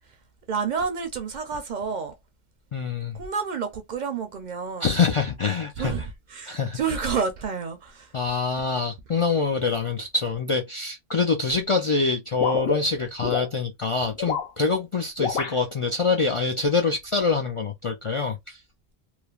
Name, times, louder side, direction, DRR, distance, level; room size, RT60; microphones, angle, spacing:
voice 1, 0.5-2.1 3.1-5.0 5.8-8.1, right 5 dB, 55° right, 0.6 m, -29 dB
voice 2, 2.7-3.2 4.8-5.9 6.5-6.8 8.1-18.6, left 4 dB, 50° left, 0.4 m, -25 dB
sound 1, 12.4-13.5 14.1-14.5 15.2-15.6, left 6 dB, 70° left, 1.0 m, -27 dB
3.1 x 2.1 x 2.3 m
omnidirectional pair, 1.0 m